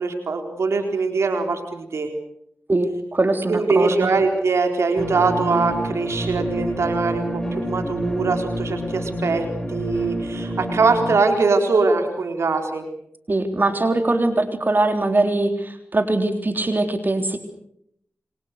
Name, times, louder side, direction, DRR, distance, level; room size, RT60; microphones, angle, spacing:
voice 1, 0.0-2.1 3.5-12.9, right 4 dB, 85° right, 5 dB, 4.0 m, -22 dB
voice 2, 2.7-4.1 13.3-17.4, right 2 dB, 45° right, 7 dB, 3.8 m, -21 dB
sound 1, 5.0-11.1, equal, 10° left, 7.0 m, -28 dB
29.0 x 25.0 x 6.7 m, 0.73 s
cardioid pair, 45°, 5 cm